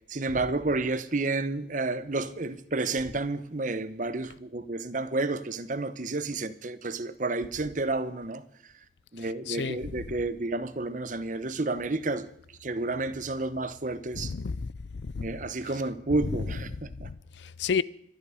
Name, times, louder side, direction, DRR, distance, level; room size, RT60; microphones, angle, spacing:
voice 1, 0.1-8.4 9.1-12.3 12.6-14.3 15.2-17.1, right 2 dB, 45° right, 0.9 m, -30 dB
voice 2, 9.2-10.0 14.1-15.3 16.2-16.3 17.0-17.8, left 5 dB, 75° left, 0.5 m, -32 dB
25.0 x 9.6 x 5.1 m
head